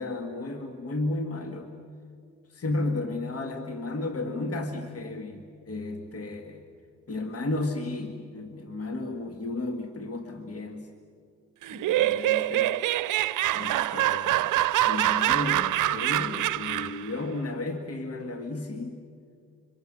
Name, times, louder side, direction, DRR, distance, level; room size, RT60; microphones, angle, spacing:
voice 1, 0.0-1.7 2.5-6.6 7.1-10.9 11.7-12.7 13.5-14.5 14.8-19.0, left 2 dB, 45° left, 5 dB, 2.1 m, -33 dB
Laughter, 11.6-17.1, right 14 dB, 60° right, 0.7 m, -25 dB
26.0 x 25.0 x 6.6 m, 2.3 s
supercardioid pair, 65°, 34 cm